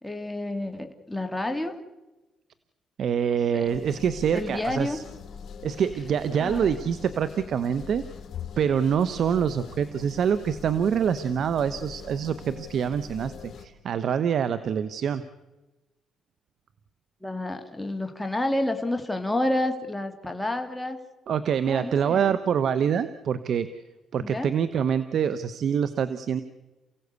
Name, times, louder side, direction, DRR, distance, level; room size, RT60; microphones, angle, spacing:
voice 1, 0.0-1.7 3.5-3.6 4.3-5.0 6.4-6.7 17.2-21.0 21.7-22.4 24.2-24.5, left 1 dB, 5° left, 5 dB, 2.3 m, -29 dB
voice 2, 3.0-5.0 5.6-8.1 8.6-15.2 21.3-23.7 24.1-26.4, right 8 dB, 65° right, 13 dB, 1.0 m, -25 dB
sound 1, 3.7-13.7, left 7 dB, 60° left, 2.1 m, -42 dB
29.0 x 16.5 x 8.2 m, 1.1 s
cardioid pair, 90°, 0 cm